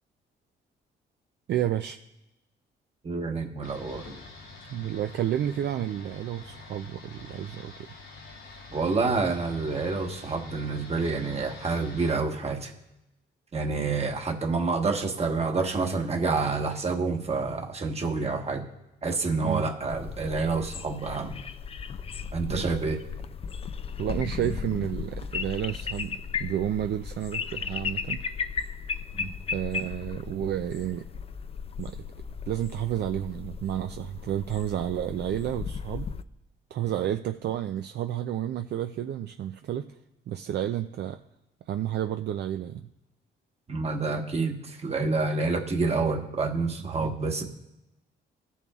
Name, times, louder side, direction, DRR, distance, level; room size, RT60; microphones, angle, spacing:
voice 1, 1.5-2.0 4.7-7.7 19.4-19.7 22.5-22.7 24.0-28.2 29.5-31.0 31.8-32.0 32.5-36.1 36.7-39.9 40.3-41.2 41.7-42.9 46.8-47.1, right 11 dB, 60° right, 7 dB, 0.4 m, -31 dB
voice 2, 3.0-4.1 8.7-12.7 13.5-18.7 19.0-21.4 22.3-23.0 29.2-29.3 43.7-47.4, right 4 dB, 30° right, 3 dB, 1.3 m, -28 dB
sound 1, 3.6-12.1, left 3 dB, 80° left, 3.1 m, -46 dB
sound 2, 19.9-36.2, left 6 dB, 30° left, 0.4 m, -36 dB
15.5 x 7.0 x 2.4 m, 0.94 s
cardioid pair, 90°, 20 cm